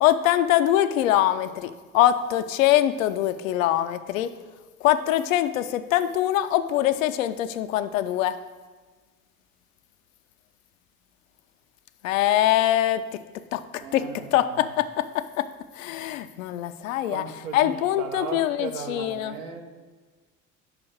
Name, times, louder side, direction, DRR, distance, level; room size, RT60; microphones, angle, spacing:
voice 1, 0.0-4.3 4.8-8.4 12.0-13.2 13.5-14.0 14.3-15.5 15.7-17.2 17.5-19.3, left 12 dB, 65° left, 12 dB, 0.5 m, -23 dB
voice 2, 13.8-14.5 17.1-19.6, right 5 dB, 70° right, 5 dB, 0.9 m, -36 dB
5.5 x 4.8 x 6.4 m, 1.4 s
figure-of-eight pair, 60°, 44 cm